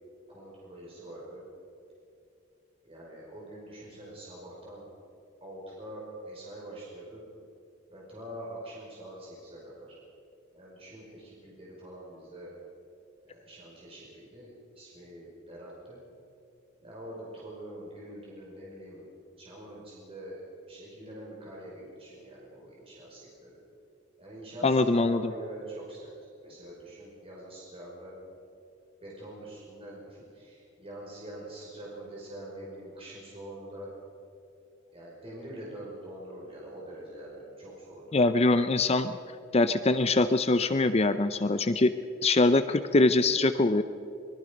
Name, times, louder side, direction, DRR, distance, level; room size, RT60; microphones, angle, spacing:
voice 1, 0.3-1.4 2.8-4.8 5.4-7.2 7.9-10.0 10.5-12.5 13.3-16.0 16.8-19.1 19.4-20.4 20.7-23.5 24.2-26.1 26.4-28.1 29.0-33.9 34.9-38.2, right 1 dB, 30° right, -5 dB, 5.5 m, -44 dB
voice 2, 24.6-25.2 38.1-39.1 39.5-41.9 42.2-43.8, left 2 dB, 30° left, 10 dB, 0.6 m, -23 dB
24.5 x 22.0 x 5.3 m, 2.6 s
head